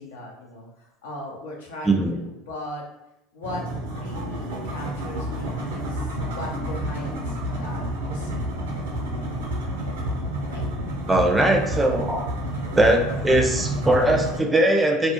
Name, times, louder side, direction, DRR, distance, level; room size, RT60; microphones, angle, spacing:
voice 1, 0.0-2.8 3.3-3.6 3.9-8.4 10.5-10.6, left 1 dB, 85° left, -3 dB, 0.6 m, -38 dB
voice 2, 1.8-2.2 11.1-12.2 12.7-15.1, right 1 dB, 15° right, 3 dB, 0.4 m, -20 dB
sound 1, 3.4-14.4, equal, 80° right, 0.5 m, -29 dB
2.3 x 2.0 x 2.7 m, 0.89 s
hypercardioid pair, 85°, 0 cm